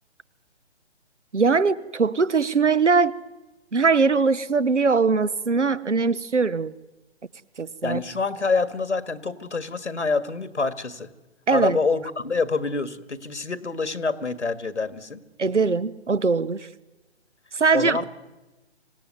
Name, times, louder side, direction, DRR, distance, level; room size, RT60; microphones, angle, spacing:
voice 1, 1.3-3.1 3.7-6.7 7.6-8.0 11.5-11.8 15.4-16.7 17.5-18.0, right 4 dB, 90° right, 20 dB, 1.1 m, -21 dB
voice 2, 7.8-11.1 11.5-15.2 17.7-18.1, left 4 dB, 85° left, 12 dB, 2.0 m, -26 dB
25.5 x 17.0 x 9.5 m, 1.1 s
figure-of-eight pair, 140°, 34 cm